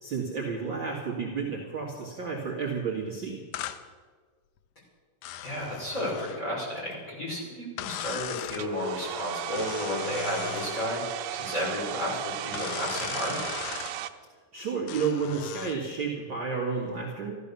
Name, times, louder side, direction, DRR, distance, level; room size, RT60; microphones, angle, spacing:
voice 1, 0.0-3.4 14.5-17.4, right 5 dB, 40° right, -5 dB, 2.5 m, -31 dB
sound 1, 3.5-3.8 5.2-6.4 7.8-8.7 9.5-10.9 12.5-14.0 14.9-15.8, left 12 dB, 90° left, 2.4 m, -38 dB
voice 2, 5.4-13.4, left 1 dB, 20° left, -5 dB, 5.8 m, -32 dB
Domestic sounds home sounds, 8.5-14.1, right 12 dB, 90° right, 2.4 m, -36 dB
14.0 x 14.0 x 7.0 m, 1.5 s
omnidirectional pair, 3.8 m